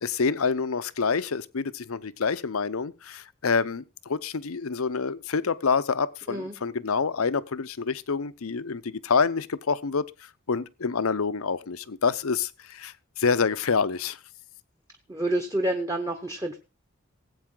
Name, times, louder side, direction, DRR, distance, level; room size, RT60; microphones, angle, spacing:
voice 1, 0.0-10.0 10.5-14.2, left 5 dB, 85° left, 0.7 m, -27 dB
voice 2, 15.1-16.6, right 1 dB, 15° right, 1.0 m, -28 dB
18.0 x 8.4 x 3.8 m
head